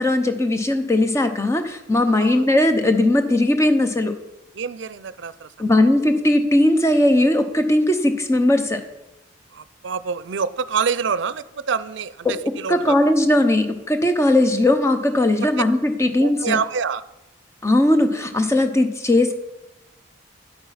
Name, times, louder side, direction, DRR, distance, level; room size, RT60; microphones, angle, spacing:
voice 1, 0.0-4.2 5.6-8.8 12.7-16.6 17.6-19.3, left 1 dB, 15° left, 7 dB, 0.7 m, -18 dB
voice 2, 4.5-5.5 9.5-13.0 16.0-17.0, right 6 dB, 70° right, 16 dB, 0.5 m, -26 dB
9.9 x 8.5 x 5.7 m, 0.95 s
head